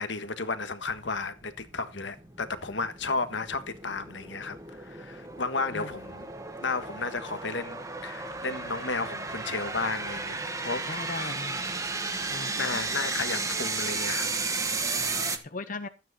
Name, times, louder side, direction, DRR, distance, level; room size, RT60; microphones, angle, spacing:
voice 1, 0.0-6.2 6.6-10.9 11.2-11.3 12.5-14.3, left 3 dB, 75° left, 1.5 m, -33 dB
sound 1, 0.8-15.4, right 3 dB, 15° right, 1.5 m, -34 dB
voice 2, 10.9-11.8 12.3-12.8 14.6-15.9, left 3 dB, 45° left, 0.8 m, -39 dB
13.5 x 9.2 x 4.2 m
head